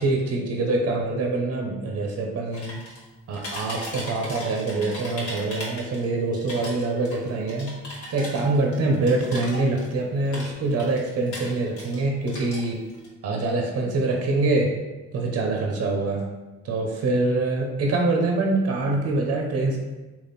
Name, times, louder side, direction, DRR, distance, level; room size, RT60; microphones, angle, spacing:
voice 1, 0.0-2.8 3.3-7.7 8.1-12.8 13.2-14.7 15.1-16.3 16.6-19.8, right 2 dB, 55° right, 1 dB, 0.7 m, -25 dB
sound 1, 2.5-3.1 3.3-6.1 6.3-10.0 10.3-12.0 12.3-13.1, left 1 dB, 70° left, 1.3 m, -37 dB
3.5 x 2.4 x 3.9 m, 1.1 s
cardioid pair, 90°, 30 cm